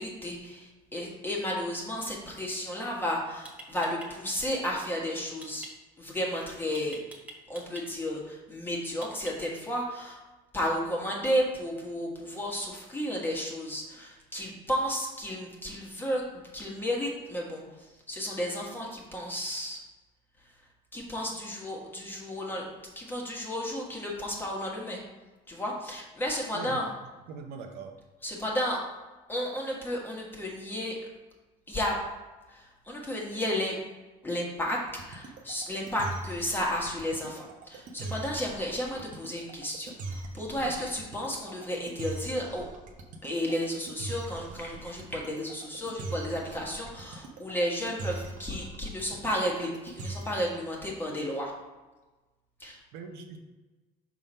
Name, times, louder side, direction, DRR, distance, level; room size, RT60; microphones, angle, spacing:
voice 1, 0.0-5.7 6.0-7.0 7.5-10.2 10.5-16.2 16.5-17.6 18.1-19.8 20.9-22.7 22.9-25.0 25.5-26.9 28.2-28.8 29.3-31.0 31.7-32.0 32.5-33.8 34.2-34.8 35.1-42.7 43.2-51.5 52.6-52.8, equal, 10° left, -2 dB, 1.6 m, -33 dB
sound 1, 3.4-4.1 5.4-5.7 6.7-7.8 9.0-9.6, right 2 dB, 10° right, 1.2 m, -45 dB
voice 2, 26.5-26.9 27.3-28.0 40.5-40.8 52.9-53.4, right 5 dB, 80° right, 4 dB, 0.9 m, -42 dB
sound 2, 34.9-50.5, right 2 dB, 50° right, 1.0 m, -40 dB
6.0 x 3.7 x 5.5 m, 1.2 s
cardioid pair, 135°, 17 cm